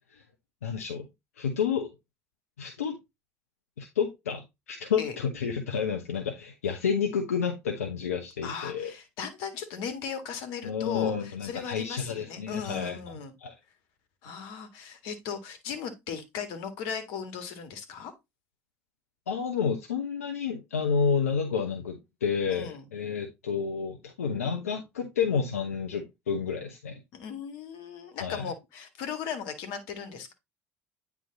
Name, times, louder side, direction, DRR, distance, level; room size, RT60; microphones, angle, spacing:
voice 1, 0.6-1.1 1.4-1.9 2.6-3.0 3.8-8.9 10.6-13.0 13.4-13.5 19.3-27.0 28.2-28.4, left 6 dB, 90° left, 0.9 m, -30 dB
voice 2, 8.4-13.3 14.2-18.1 22.5-22.9 27.1-30.3, left 6 dB, 70° left, 1.8 m, -37 dB
9.3 x 3.6 x 3.9 m
hypercardioid pair, 65°, 8 cm